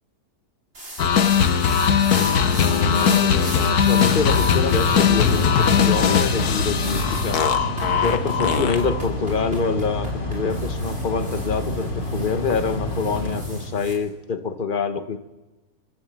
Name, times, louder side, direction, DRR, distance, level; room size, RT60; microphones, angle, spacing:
sound 1, 0.7-13.9, right 1 dB, 40° right, 5.6 m, -38 dB
sound 2, 1.0-9.0, left 7 dB, 65° left, 1.5 m, -20 dB
voice 1, 2.5-7.7 8.0-15.2, left 5 dB, 35° left, 9 dB, 1.0 m, -26 dB
Mechanical fan, 3.7-14.1, left 1 dB, 90° left, 3.8 m, -29 dB
29.5 x 13.5 x 7.5 m, 1.1 s
omnidirectional pair, 1.8 m